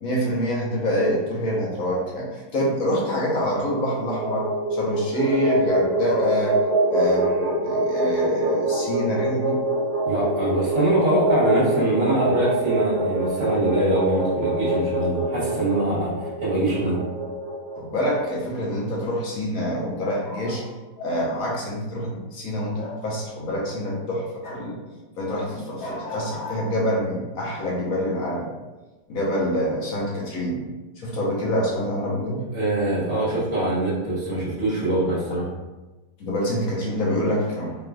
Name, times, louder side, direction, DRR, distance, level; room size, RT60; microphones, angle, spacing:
voice 1, 0.0-6.6 6.9-9.6 17.8-20.7 21.0-24.8 25.2-28.5 29.1-30.6 31.0-32.4 36.2-37.8, equal, 60° left, -3 dB, 1.3 m, -26 dB
sound 1, 3.8-18.1, right 2 dB, 85° right, 1.8 m, -25 dB
voice 2, 10.0-17.0 32.5-35.5, right 1 dB, 55° right, -10 dB, 2.1 m, -23 dB
5.0 x 3.0 x 2.3 m, 1.2 s
omnidirectional pair, 1.8 m